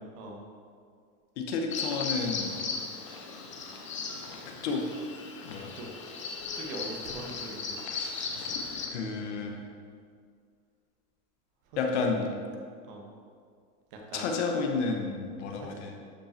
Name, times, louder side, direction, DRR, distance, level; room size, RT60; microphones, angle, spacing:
voice 1, 1.4-2.6 4.4-4.8 5.4-5.8 8.9-9.6 11.8-12.3 14.1-16.0, left 4 dB, 50° left, 2 dB, 1.1 m, -31 dB
Bird vocalization bird call bird song, 1.7-8.9, left 4 dB, 25° left, 0.4 m, -37 dB
voice 2, 5.6-5.9 6.5-7.8 12.9-13.1 13.9-14.2 15.5-15.8, right 2 dB, 35° right, 0 dB, 1.3 m, -42 dB
12.0 x 5.3 x 4.4 m, 2.1 s
supercardioid pair, 170°, 46 cm